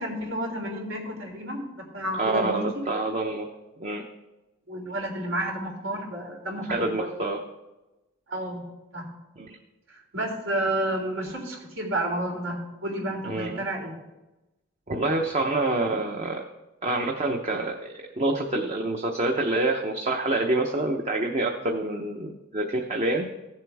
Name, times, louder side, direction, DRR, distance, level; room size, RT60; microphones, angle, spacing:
voice 1, 0.0-1.7 1.9-2.8 4.7-7.3 8.3-8.6 8.9-9.0 9.9-13.9, right 1 dB, 80° right, -1 dB, 3.4 m, -31 dB
voice 2, 2.2-3.5 3.8-4.0 6.7-7.4 9.4-9.5 13.2-13.6 14.9-16.4 16.8-23.3, right 2 dB, 35° right, 2 dB, 0.8 m, -27 dB
16.0 x 7.4 x 3.5 m, 1.0 s
head